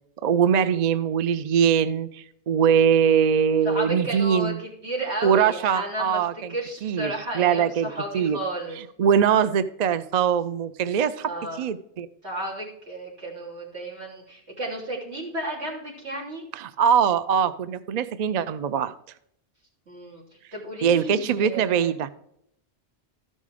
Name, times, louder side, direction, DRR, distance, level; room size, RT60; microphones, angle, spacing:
voice 1, 0.2-4.6 5.2-6.5 6.8-8.4 9.0-11.3 11.6-12.1 16.5-18.9 20.8-22.1, right 8 dB, 55° right, 14 dB, 0.5 m, -22 dB
voice 2, 3.6-6.2 6.5-8.8 11.2-11.6 12.2-16.5 19.9-20.2 20.5-21.9, right 1 dB, 80° right, -3 dB, 3.6 m, -33 dB
13.5 x 5.4 x 4.9 m, 0.72 s
omnidirectional pair, 1.1 m